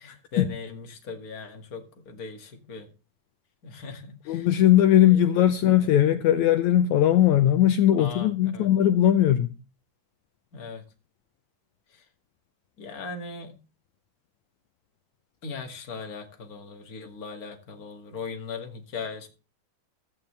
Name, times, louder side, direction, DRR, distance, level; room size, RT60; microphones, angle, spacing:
voice 1, 0.0-2.9 3.6-4.5 5.0-5.2 5.7-5.9 8.0-8.7 10.5-10.8 11.9-12.1 12.8-13.6 15.4-19.3, left 4 dB, 30° left, 2.2 m, -39 dB
voice 2, 4.3-9.5, left 11 dB, 70° left, 2.0 m, -19 dB
16.0 x 14.0 x 3.3 m
omnidirectional pair, 3.8 m